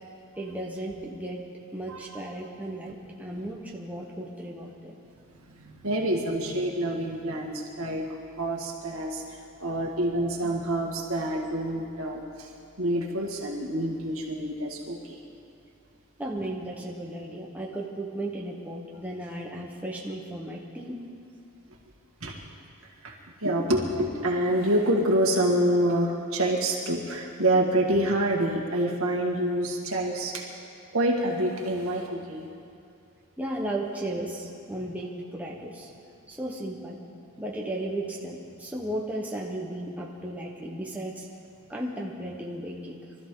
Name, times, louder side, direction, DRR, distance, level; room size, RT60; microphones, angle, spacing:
voice 1, 0.3-1.5 1.7-4.9 16.2-21.0 33.4-35.9 36.3-37.0 37.4-41.3 41.7-43.1, right 1 dB, 5° right, -3 dB, 1.2 m, -35 dB
voice 2, 1.9-2.2 5.6-8.1 8.4-9.2 9.6-12.5 12.8-15.2 22.2-22.3 23.0-30.4 30.9-32.5, right 1 dB, 70° right, -1 dB, 2.1 m, -27 dB
24.0 x 13.5 x 3.9 m, 2.4 s
head